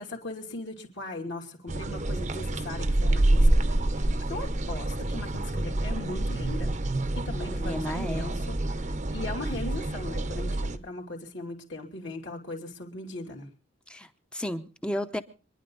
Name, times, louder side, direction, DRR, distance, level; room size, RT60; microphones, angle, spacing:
voice 1, 0.0-6.7 7.1-13.5, left 2 dB, 55° left, 3.0 m, -39 dB
sound 1, 1.7-10.8, right 1 dB, 35° right, 0.8 m, -27 dB
voice 2, 7.5-8.4 13.9-15.2, equal, 5° left, 0.8 m, -33 dB
26.5 x 10.5 x 3.9 m
head